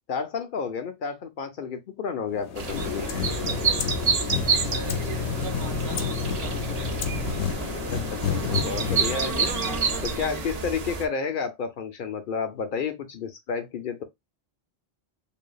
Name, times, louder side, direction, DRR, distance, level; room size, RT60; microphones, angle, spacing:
voice 1, 0.1-3.1 7.9-9.5 10.0-14.0, left 6 dB, 60° left, 0.6 m, -31 dB
sound 1, 2.3-10.6, left 7 dB, 90° left, 0.9 m, -30 dB
sound 2, 2.6-11.0, right 5 dB, 45° right, 0.6 m, -29 dB
voice 2, 4.1-7.0 9.6-10.6, right 4 dB, 70° right, 1.2 m, -41 dB
5.0 x 2.6 x 2.3 m
omnidirectional pair, 1.1 m